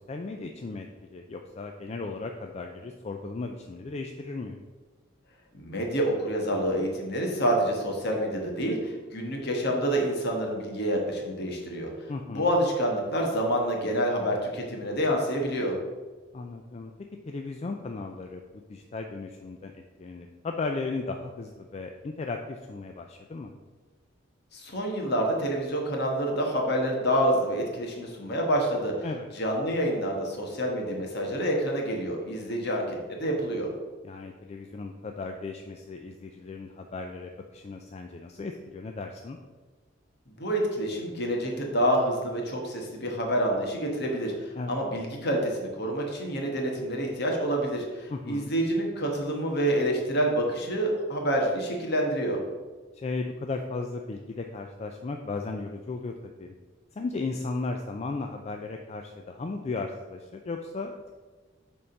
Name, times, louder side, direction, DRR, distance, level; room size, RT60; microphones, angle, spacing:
voice 1, 0.0-4.6 12.1-12.5 16.3-16.9 17.3-18.4 18.7-23.5 29.0-29.3 34.0-39.4 44.5-44.8 48.1-48.5 52.9-56.5 57.0-61.1, left 3 dB, 35° left, 4 dB, 0.3 m, -36 dB
voice 2, 5.5-11.9 12.3-15.7 24.5-28.9 29.3-33.7 40.3-52.4, equal, 55° left, 1 dB, 1.3 m, -27 dB
6.9 x 3.6 x 5.2 m, 1.3 s
head